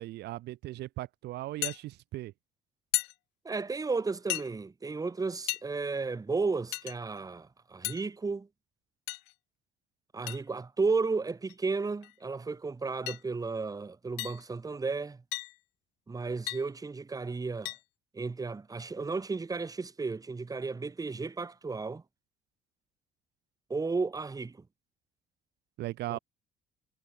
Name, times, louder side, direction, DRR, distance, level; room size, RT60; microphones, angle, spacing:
voice 1, 0.0-2.3 25.8-26.2, right 16 dB, 75° right, 1.7 m, -38 dB
sound 1, 1.6-1.8 2.9-3.1 4.3-4.5 5.5-5.6 6.7-7.0 7.8-8.0 9.1-9.3 10.3-10.4 11.5-11.6 12.0-12.1 13.1-13.2 14.2-14.4 15.3-15.6 16.5-16.6 17.6-17.8, left 26 dB, 90° left, 0.9 m, -34 dB
voice 2, 3.4-8.5 10.1-15.2 16.1-17.7 18.1-22.0 23.7-24.6 26.1-26.2, right 4 dB, 20° right, 2.0 m, -33 dB
cardioid pair, 95°, 17 cm